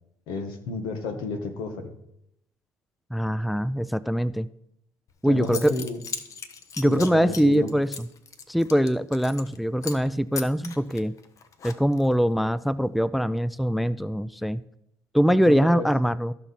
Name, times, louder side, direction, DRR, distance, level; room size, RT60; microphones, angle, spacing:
voice 1, 0.3-1.9 5.2-6.0 6.8-7.7 15.4-15.9, left 3 dB, 85° left, 6 dB, 1.3 m, -32 dB
voice 2, 3.1-4.5 5.2-5.9 6.8-8.1 8.5-11.1 11.6-14.6 15.1-16.3, equal, ahead, 17 dB, 0.3 m, -23 dB
Zipper (clothing) / Coin (dropping), 5.1-5.2 5.4-9.6 9.8-10.1 10.3-12.1, left 6 dB, 50° left, 1.0 m, -38 dB
14.0 x 5.8 x 4.1 m, 0.79 s
cardioid pair, 90°, 7 cm